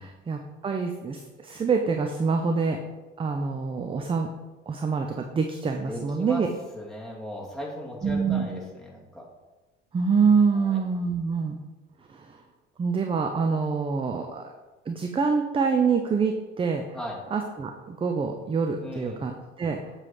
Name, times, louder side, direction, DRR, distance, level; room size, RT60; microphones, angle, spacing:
voice 1, 0.0-2.8 3.2-4.3 4.7-6.5 8.0-8.5 9.9-11.6 12.1-12.4 12.8-14.5 14.9-16.8 17.3-19.8, right 5 dB, 15° right, 4 dB, 0.5 m, -26 dB
voice 2, 5.9-6.4 6.7-9.2 10.5-10.8 16.9-17.2 18.8-19.2, left 1 dB, ahead, -5 dB, 2.4 m, -37 dB
7.4 x 3.3 x 5.7 m, 1.2 s
figure-of-eight pair, 60°, 35 cm